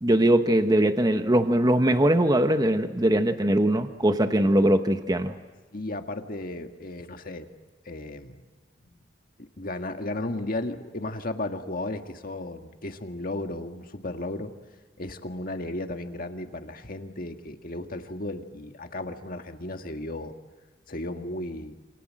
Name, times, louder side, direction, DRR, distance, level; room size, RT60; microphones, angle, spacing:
voice 1, 0.0-5.3, right 1 dB, 20° right, 8 dB, 1.0 m, -21 dB
voice 2, 5.7-7.5 7.8-8.4 9.4-14.5 15.0-20.3 20.9-21.8, left 2 dB, 50° left, 6 dB, 1.8 m, -34 dB
28.0 x 26.5 x 7.6 m, 1.2 s
head